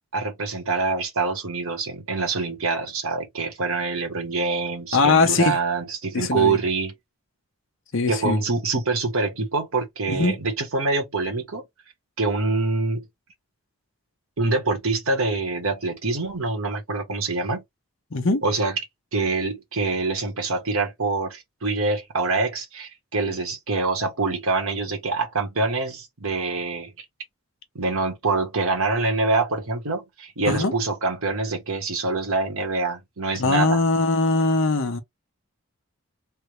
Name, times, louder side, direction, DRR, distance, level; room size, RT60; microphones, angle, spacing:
voice 1, 0.1-6.9 8.1-11.6 12.2-13.1 14.4-17.6 18.4-18.7 19.1-27.0 27.7-33.8, right 3 dB, 70° right, 1.2 m, -25 dB
voice 2, 4.9-5.6 6.1-6.6 7.9-8.4 10.1-10.4 18.1-18.4 30.5-30.7 33.4-35.0, left 3 dB, 55° left, 0.8 m, -21 dB
3.4 x 2.1 x 3.1 m
head